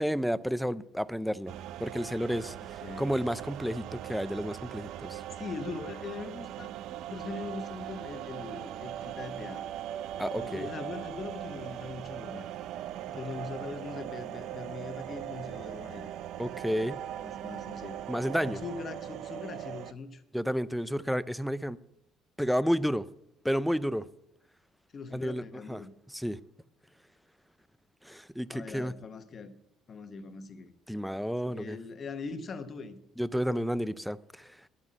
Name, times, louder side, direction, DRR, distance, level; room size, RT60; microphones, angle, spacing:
voice 1, 0.0-1.5 1.8-5.2 10.2-10.7 13.1-13.2 16.4-17.0 18.1-18.6 20.3-21.8 22.4-23.1 23.4-24.0 25.1-25.8 26.1-26.4 28.0-28.9 30.9-31.8 33.2-34.6, equal, ahead, 0.3 m, -31 dB
sound 1, 1.5-19.9, right 12 dB, 65° right, 0.4 m, -40 dB
voice 2, 5.3-9.6 10.4-12.5 13.2-16.1 17.1-18.0 18.4-20.2 24.9-25.9 28.5-29.6 29.9-30.7 31.5-33.0, left 4 dB, 30° left, 1.0 m, -41 dB
11.0 x 8.1 x 7.7 m
cardioid pair, 160°, 0 cm